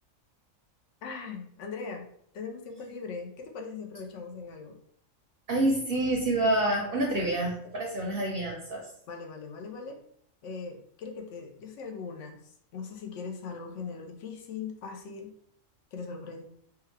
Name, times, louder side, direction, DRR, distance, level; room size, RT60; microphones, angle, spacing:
voice 1, 1.0-2.1 2.3-4.8 9.1-10.0 10.4-15.3 15.9-16.5, left 5 dB, 75° left, 4 dB, 0.9 m, -40 dB
voice 2, 5.5-8.9, right 1 dB, 60° right, -1 dB, 0.7 m, -27 dB
3.4 x 2.2 x 3.2 m, 0.68 s
omnidirectional pair, 1.3 m